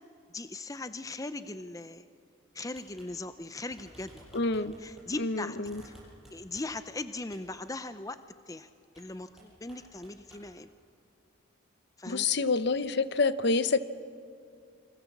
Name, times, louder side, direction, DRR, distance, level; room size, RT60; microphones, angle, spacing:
voice 1, 0.3-2.1 2.5-4.3 4.6-5.6 5.8-5.9 6.3-8.2 8.5-8.7 8.9-10.7 12.0-12.3, left 2 dB, 15° left, 11 dB, 0.6 m, -39 dB
sound 1, 2.7-3.1 3.3-3.4 3.7-5.1 5.6-6.9 7.3-7.5 8.9-9.1 9.4-10.5, right 1 dB, ahead, 7.4 m, -54 dB
voice 2, 4.3-4.8 5.2-5.8 12.1-13.8, left 4 dB, 55° left, 13 dB, 0.8 m, -27 dB
29.0 x 24.5 x 7.3 m, 2.4 s
head